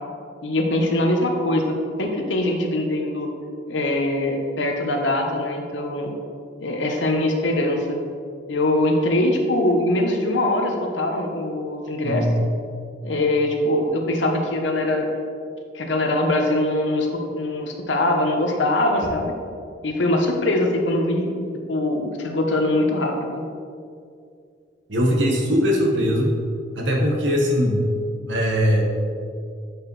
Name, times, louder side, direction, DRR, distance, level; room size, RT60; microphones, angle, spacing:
voice 1, 0.4-3.3 3.7-6.1 6.6-8.0 8.5-12.3 13.0-15.1 15.7-19.3 19.8-21.4 21.7-23.4, left 1 dB, 85° left, 3 dB, 0.8 m, -22 dB
voice 2, 24.9-26.3 26.7-27.8 28.3-28.8, equal, 85° right, 0 dB, 1.1 m, -20 dB
7.9 x 4.8 x 3.1 m, 2.3 s
head